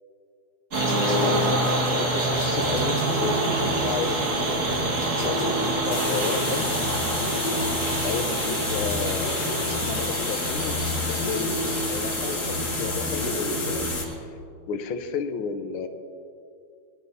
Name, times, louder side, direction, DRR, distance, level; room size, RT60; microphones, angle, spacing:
sound 1, 0.7-14.1, right 1 dB, 40° right, 1.8 m, -27 dB
voice 1, 1.1-6.8 8.0-13.9 14.7-15.9, left 5 dB, 75° left, 7 dB, 1.6 m, -33 dB
sound 2, 2.1-14.0, equal, 70° right, 4.4 m, -32 dB
sound 3, 5.9-14.1, left 3 dB, 40° left, 1.7 m, -31 dB
20.0 x 11.0 x 2.7 m, 2.5 s
omnidirectional pair, 2.3 m